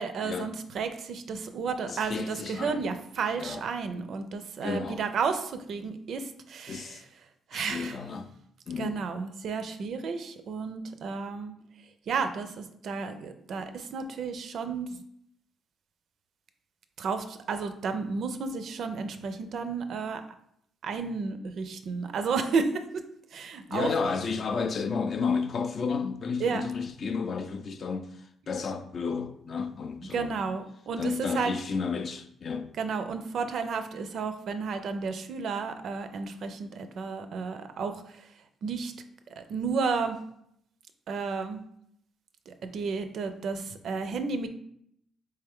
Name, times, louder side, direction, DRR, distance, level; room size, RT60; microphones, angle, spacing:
voice 1, 0.0-7.0 7.5-8.0 8.8-11.5 12.1-15.0 17.0-20.2 20.8-23.0 23.3-23.9 26.4-26.6 30.1-31.5 32.8-38.3 38.6-38.9 39.4-40.2 41.1-41.6 42.5-44.5, right 5 dB, 65° right, 0.4 m, -32 dB
voice 2, 1.8-3.0 3.3-3.6 4.6-5.0 6.7-7.0 7.5-8.3 8.7-9.0 23.7-30.4 31.0-32.7, left 5 dB, 50° left, 0.4 m, -32 dB
3.3 x 3.1 x 3.6 m
cardioid pair, 90°, 0 cm